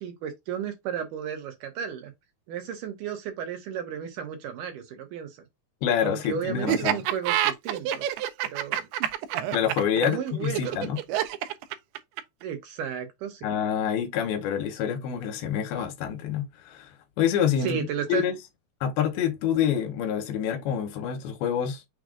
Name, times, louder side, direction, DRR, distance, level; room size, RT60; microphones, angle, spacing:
voice 1, 0.0-2.1 2.5-5.3 6.0-8.0 8.4-8.9 10.0-10.8 12.4-13.6 17.6-18.2, right 8 dB, 70° right, 2.1 m, -33 dB
voice 2, 5.8-7.0 9.5-11.0 13.4-16.9 17.2-18.4 18.8-21.8, left 9 dB, 80° left, 2.7 m, -27 dB
Laughter, 6.7-12.4, right 12 dB, 90° right, 2.5 m, -27 dB
6.3 x 2.3 x 3.6 m
omnidirectional pair, 4.5 m